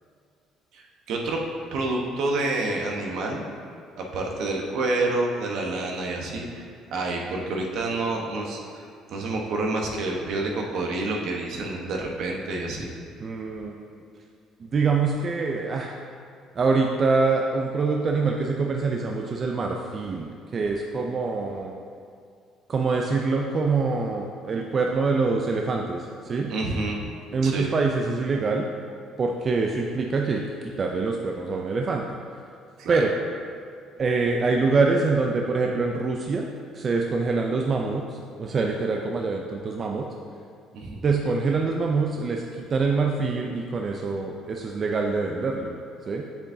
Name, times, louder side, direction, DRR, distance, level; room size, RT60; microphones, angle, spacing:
voice 1, 0.7-1.4 1.7-3.4 4.0-6.6 6.9-8.8 9.1-12.9 26.5-27.0 27.4-27.7 32.8-33.0 40.7-41.0, right 2 dB, 70° right, 0 dB, 1.1 m, -28 dB
voice 2, 13.2-13.8 14.6-15.9 16.6-21.7 22.7-26.5 27.3-28.7 29.2-32.2 32.9-33.1 34.0-36.4 36.7-38.0 38.4-40.1 41.0-45.8 46.1-46.2, right 4 dB, 40° right, 1 dB, 0.5 m, -25 dB
7.5 x 7.0 x 2.7 m, 2.3 s
cardioid pair, 100°, 0 cm